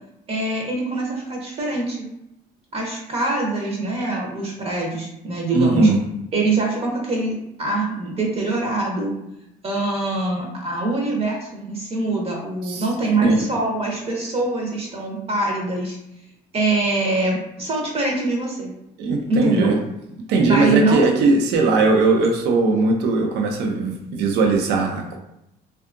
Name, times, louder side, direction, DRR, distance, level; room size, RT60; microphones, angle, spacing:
voice 1, 0.3-2.1 2.7-5.9 6.3-9.1 9.6-16.0 16.5-18.7 19.3-19.8 20.5-21.1, right 2 dB, 35° right, -1 dB, 0.6 m, -24 dB
voice 2, 5.5-6.0 12.7-12.8 13.2-13.5 19.0-19.8 20.3-25.2, right 3 dB, 85° right, 2 dB, 0.5 m, -19 dB
2.6 x 2.3 x 2.4 m, 0.84 s
cardioid pair, 110°, 17 cm